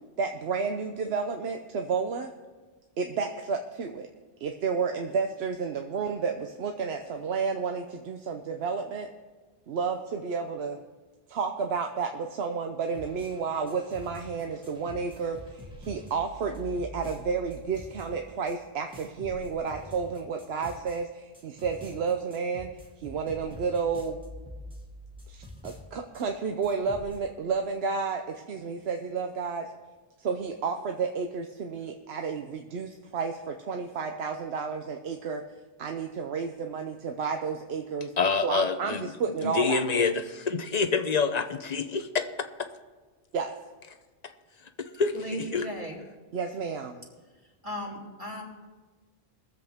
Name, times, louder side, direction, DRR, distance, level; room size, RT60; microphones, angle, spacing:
voice 1, 0.2-2.3 3.0-4.1 4.4-9.1 9.7-10.8 11.3-22.7 23.0-24.2 25.3-29.7 30.2-35.4 35.8-38.1 38.4-40.1 43.3-43.5 46.3-47.0, right 5 dB, 85° right, 4 dB, 1.0 m, -31 dB
sound 1, 12.9-18.6 18.9-21.0 21.3-26.3 26.6-27.2, left 1 dB, 5° right, 1.7 m, -46 dB
voice 2, 38.2-39.1 39.4-42.3 45.0-45.6, left 5 dB, 45° left, 9 dB, 0.7 m, -27 dB
voice 3, 45.1-46.0 47.6-48.4, equal, 30° right, -3 dB, 2.5 m, -36 dB
22.0 x 7.7 x 3.5 m, 1.3 s
omnidirectional pair, 1.0 m